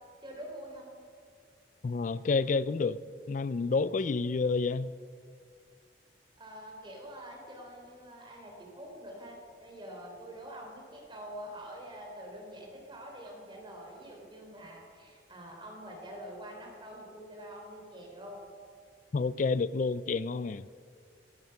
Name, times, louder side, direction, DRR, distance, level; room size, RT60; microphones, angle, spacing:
voice 1, 0.2-0.9 6.4-18.4, equal, 25° right, 0 dB, 3.5 m, -46 dB
voice 2, 1.8-3.0 3.3-4.9 19.1-20.7, left 4 dB, 45° left, 17 dB, 0.4 m, -29 dB
19.5 x 11.0 x 5.8 m, 2.2 s
head